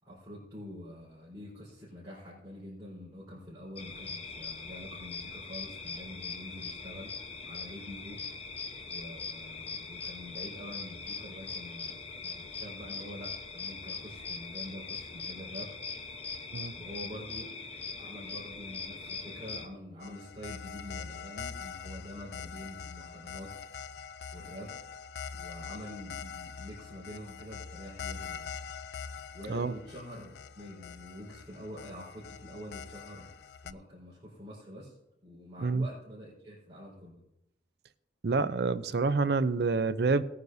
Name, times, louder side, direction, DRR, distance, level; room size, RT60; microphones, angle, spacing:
voice 1, 0.0-7.1 7.4-8.2 8.9-15.7 16.8-17.5 18.0-23.5 24.0-24.1 24.3-24.8 25.3-28.5 29.3-33.3 33.6-35.0 35.2-37.2, equal, 20° right, -9 dB, 4.2 m, -46 dB
sound 1, 3.8-19.7, left 4 dB, 35° left, 1.0 m, -41 dB
sound 2, 20.0-33.7, left 6 dB, 60° left, 0.4 m, -43 dB
voice 2, 38.2-40.2, right 4 dB, 60° right, 14 dB, 0.5 m, -27 dB
18.5 x 9.5 x 2.7 m, 0.86 s
head